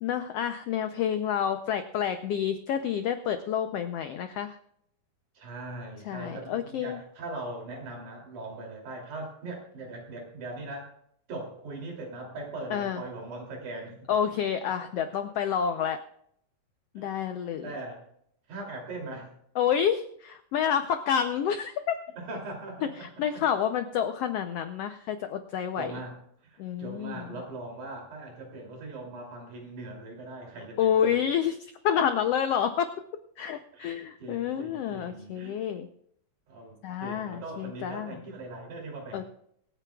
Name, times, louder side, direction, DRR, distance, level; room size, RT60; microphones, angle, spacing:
voice 1, 0.0-4.5 6.1-7.0 12.7-13.0 14.1-16.0 16.9-17.7 19.6-22.0 23.0-25.9 26.6-27.3 30.8-32.9 33.4-35.9 36.8-38.2 39.1-39.3, left 8 dB, 85° left, 8 dB, 1.3 m, -29 dB
voice 2, 5.3-10.9 11.3-13.9 15.0-15.1 17.0-17.1 17.4-18.0 18.5-19.3 22.2-23.1 23.3-23.4 25.8-31.2 33.7-35.6 36.5-39.3, right 2 dB, 70° right, 0 dB, 4.4 m, -40 dB
25.0 x 9.1 x 2.3 m, 0.70 s
omnidirectional pair, 3.6 m